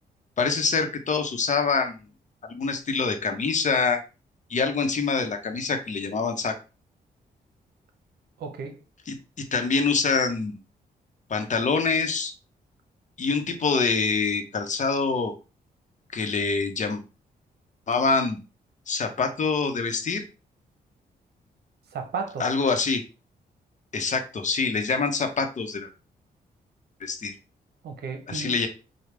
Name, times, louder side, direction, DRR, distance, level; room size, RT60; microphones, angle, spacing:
voice 1, 0.4-2.0 2.4-4.0 4.5-6.6 9.1-10.6 11.3-12.3 13.2-15.3 16.1-17.0 17.9-18.4 18.9-20.2 22.4-23.0 23.9-25.9 27.0-27.3 28.3-28.7, left 4 dB, 50° left, 0.9 m, -25 dB
voice 2, 8.4-8.8 21.9-22.5 27.8-28.7, right 5 dB, 75° right, 0.9 m, -34 dB
5.1 x 2.3 x 3.3 m
cardioid pair, 85°, 17 cm